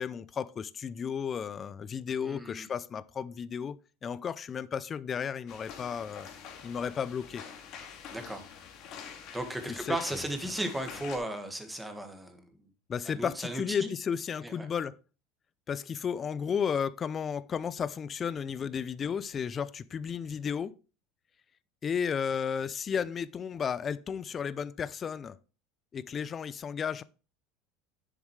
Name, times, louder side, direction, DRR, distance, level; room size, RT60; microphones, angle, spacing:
voice 1, 0.0-6.3 6.6-7.4 9.7-10.0 12.9-14.9 15.7-20.7 21.8-25.4 25.9-27.0, left 7 dB, 30° left, 0.5 m, -33 dB
voice 2, 2.1-2.7 8.1-8.5 9.3-12.4 13.1-13.9 14.4-14.7, right 1 dB, 5° right, 1.7 m, -36 dB
sound 1, 5.5-11.2, left 7 dB, 55° left, 2.2 m, -46 dB
10.0 x 7.3 x 3.2 m
supercardioid pair, 125°, 0 cm